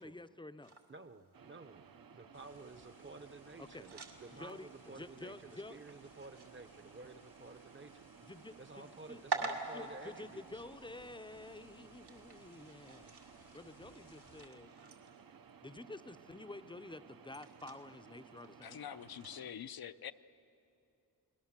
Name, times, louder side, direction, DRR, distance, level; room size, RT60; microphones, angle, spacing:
voice 1, 0.0-0.8 3.6-3.9 4.3-5.8 8.2-13.1 13.5-14.7 15.6-18.8, left 2 dB, 10° left, 11 dB, 0.6 m, -50 dB
sound 1, 0.6-19.5, right 4 dB, 80° right, 2.2 m, -49 dB
voice 2, 0.9-8.1 8.6-10.5, right 3 dB, 30° right, 11 dB, 0.8 m, -53 dB
sound 2, 1.3-19.5, right 6 dB, 60° right, 0.8 m, -58 dB
sound 3, 2.3-14.5, left 5 dB, 90° left, 2.5 m, -66 dB
voice 3, 18.6-20.1, left 9 dB, 65° left, 11 dB, 0.6 m, -45 dB
29.5 x 20.5 x 7.4 m, 2.8 s
wide cardioid pair, 125°, 39 cm